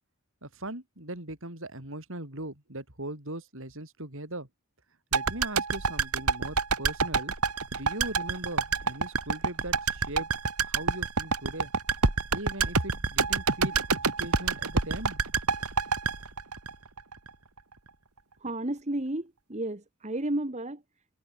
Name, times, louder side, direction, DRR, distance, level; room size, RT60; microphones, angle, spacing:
voice 1, 0.4-4.5 5.1-7.3 7.7-10.3 10.6-11.7 12.3-15.2, right 1 dB, 60° right, 6.7 m, -39 dB
sound 1, 5.1-17.3 17.6-17.7, right 4 dB, 90° right, 2.6 m, -27 dB
voice 2, 18.4-20.8, right 1 dB, 30° right, 1.7 m, -32 dB
head